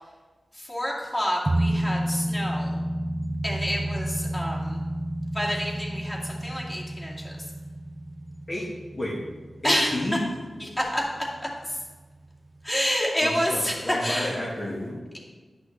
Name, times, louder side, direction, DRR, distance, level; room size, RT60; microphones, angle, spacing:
voice 1, 0.5-2.8 3.4-4.8 5.3-7.4 9.6-9.9 10.6-11.0 11.6-11.8 12.6-14.3, equal, 20° left, -4 dB, 2.3 m, -28 dB
sound 1, 1.5-10.6 10.9-11.0, right 1 dB, 25° right, 0.4 m, -30 dB
voice 2, 8.5-9.2 9.6-10.2 13.2-15.0, left 1 dB, 35° left, -6 dB, 1.5 m, -31 dB
11.5 x 6.0 x 3.3 m, 1.3 s
cardioid pair, 65°, 0 cm